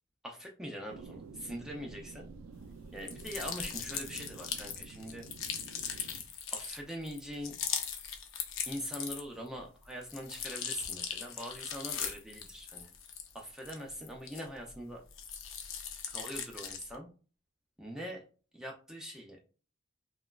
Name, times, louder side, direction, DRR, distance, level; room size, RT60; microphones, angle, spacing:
voice 1, 0.2-2.3 2.9-5.3 6.5-7.5 8.7-12.9 13.3-15.0 16.1-17.1 17.8-18.2 18.5-19.4, equal, 5° right, -1 dB, 0.4 m, -42 dB
sound 1, 0.9-6.2, right 4 dB, 85° right, 0.3 m, -49 dB
sound 2, 3.0-9.5 9.8-14.7 15.1-16.9, left 7 dB, 65° left, 0.5 m, -39 dB
2.9 x 2.2 x 2.2 m, 0.37 s
head